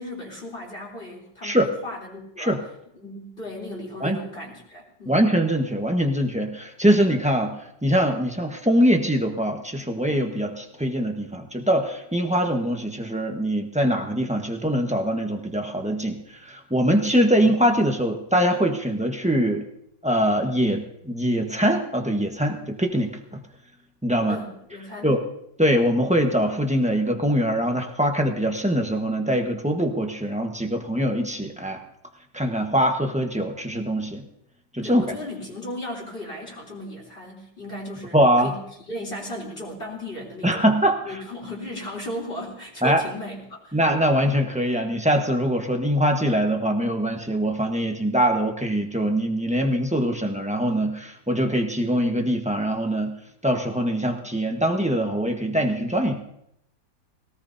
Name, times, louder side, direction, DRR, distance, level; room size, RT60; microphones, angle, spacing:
voice 1, 0.0-2.6 3.0-5.2 24.3-25.1 34.8-38.2 38.4-40.7 41.0-43.8, left 1 dB, 30° left, -2 dB, 3.7 m, -36 dB
voice 2, 5.1-19.6 20.0-23.4 24.0-24.4 25.0-25.2 25.6-31.8 32.3-34.2 34.7-35.2 38.1-38.5 40.4-41.2 42.8-43.0 43.7-53.1 53.4-56.2, equal, 5° right, 2 dB, 1.0 m, -23 dB
21.0 x 18.0 x 2.8 m, 0.77 s
omnidirectional pair, 1.9 m